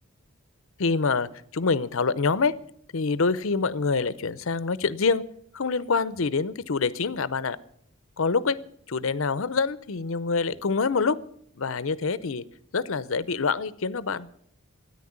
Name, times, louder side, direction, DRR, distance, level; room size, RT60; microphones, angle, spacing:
voice 1, 0.8-2.5 2.9-5.2 5.5-7.6 8.2-8.6 8.9-11.2 11.6-12.4 12.7-14.3, left 4 dB, 60° left, 18 dB, 0.6 m, -26 dB
13.5 x 9.9 x 8.7 m, 0.69 s
head